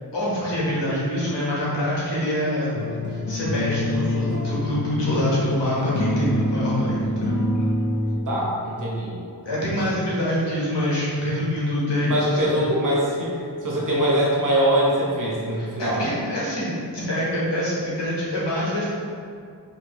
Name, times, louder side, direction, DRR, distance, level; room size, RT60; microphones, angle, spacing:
voice 1, 0.1-2.7 3.1-7.3 9.4-12.5 15.6-18.9, left 1 dB, 90° left, -7 dB, 1.3 m, -25 dB
sound 1, 2.7-8.2, left 1 dB, 45° left, 0.8 m, -26 dB
voice 2, 8.3-9.1 12.0-16.0, right 1 dB, 50° right, -4 dB, 1.1 m, -23 dB
4.7 x 3.0 x 3.1 m, 2.4 s
wide cardioid pair, 70°, 41 cm